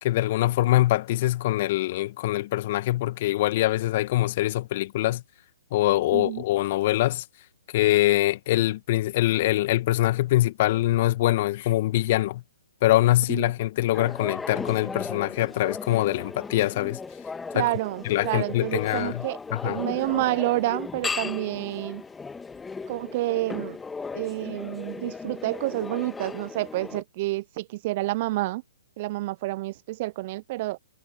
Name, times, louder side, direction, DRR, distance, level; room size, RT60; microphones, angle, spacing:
voice 1, 0.0-5.2 5.7-7.2 7.7-12.4 12.8-17.0 17.5-17.7 18.1-19.2 19.5-19.8, left 16 dB, 45° left, 1.8 m, -23 dB
voice 2, 6.1-6.4 13.3-13.5 17.5-19.4 19.6-22.0 22.9-23.8 24.1-28.6 29.0-30.8, right 19 dB, 40° right, 0.7 m, -29 dB
sound 1, 13.9-27.0, left 4 dB, 10° left, 2.0 m, -36 dB
figure-of-eight pair, 125°, 0 cm